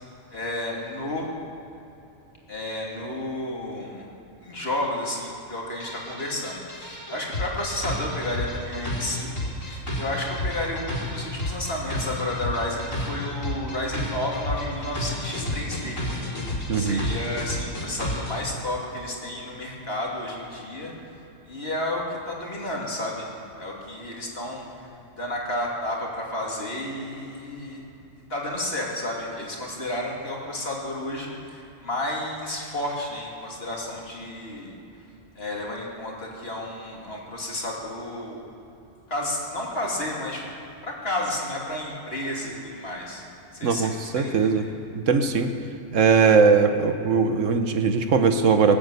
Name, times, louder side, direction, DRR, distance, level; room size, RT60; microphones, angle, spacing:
voice 1, 0.3-1.3 2.5-4.0 4.4-16.0 16.7-20.9 21.5-23.3 23.6-27.8 28.3-34.7 35.3-38.4 39.1-40.5 40.8-43.2 43.5-44.7, left 1 dB, 50° left, -3 dB, 3.0 m, -31 dB
sound 1, 5.8-18.4, left 1 dB, 85° left, 3.7 m, -31 dB
voice 2, 16.7-17.1 43.6-44.6 44.9-45.5 45.9-48.8, right 5 dB, 75° right, 7 dB, 1.4 m, -20 dB
20.5 x 8.7 x 8.2 m, 2.9 s
omnidirectional pair, 1.3 m